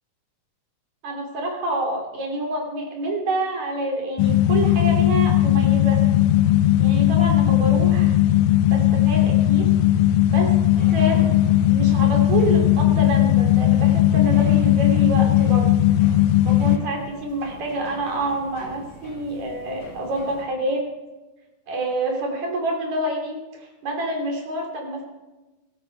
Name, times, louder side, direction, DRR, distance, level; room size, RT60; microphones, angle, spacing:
voice 1, 1.0-6.0 6.8-8.1 8.7-9.7 10.3-10.5 10.9-11.3 11.7-15.7 16.4-20.8 21.7-25.0, right 1 dB, 55° right, 1 dB, 4.2 m, -27 dB
sound 1, 4.2-16.8, left 13 dB, 75° left, 1.9 m, -17 dB
sound 2, 10.7-20.4, equal, 45° left, 6.6 m, -42 dB
17.0 x 14.0 x 4.5 m, 1.1 s
omnidirectional pair, 3.9 m